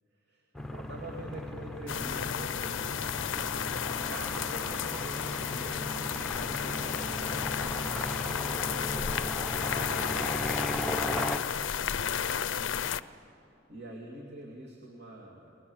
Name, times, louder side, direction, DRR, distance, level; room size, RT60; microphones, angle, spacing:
sound 1, 0.5-11.4, left 1 dB, ahead, 0.7 m, -36 dB
voice 1, 0.7-3.1 3.8-5.8 6.3-12.8 13.7-15.7, right 1 dB, 60° right, -2 dB, 2.7 m, -46 dB
sound 2, 1.9-13.0, left 8 dB, 70° left, 0.5 m, -33 dB
27.5 x 19.5 x 7.2 m, 2.6 s
head